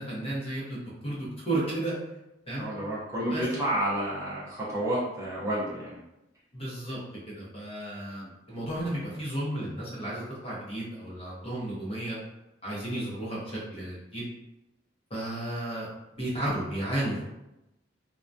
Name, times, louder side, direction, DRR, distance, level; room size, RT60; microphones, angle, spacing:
voice 1, 0.0-1.9 2.5-2.7 3.3-3.5 6.5-7.0 7.3-12.2 12.6-14.2 15.1-15.9 16.1-17.2, right 1 dB, 30° left, -6 dB, 0.7 m, -33 dB
voice 2, 2.6-6.0, right 1 dB, 15° right, -8 dB, 0.6 m, -30 dB
2.2 x 2.2 x 2.5 m, 0.92 s
head